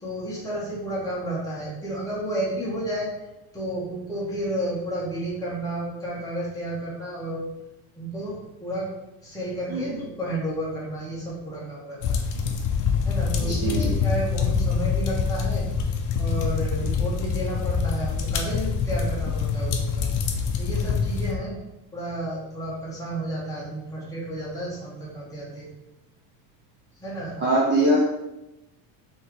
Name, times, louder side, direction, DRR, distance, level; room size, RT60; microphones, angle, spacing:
voice 1, 0.0-3.1 3.5-7.5 7.9-8.9 9.2-12.2 13.0-15.6 16.2-20.1 20.6-21.6 21.9-25.7 27.0-27.4, right 1 dB, 10° left, -7 dB, 1.3 m, -31 dB
sound 1, 12.0-21.3, left 5 dB, 50° left, 0.6 m, -25 dB
voice 2, 13.4-13.9 27.4-28.0, right 1 dB, 25° right, -4 dB, 0.6 m, -22 dB
4.3 x 3.1 x 3.7 m, 0.94 s
cardioid pair, 170°, 41 cm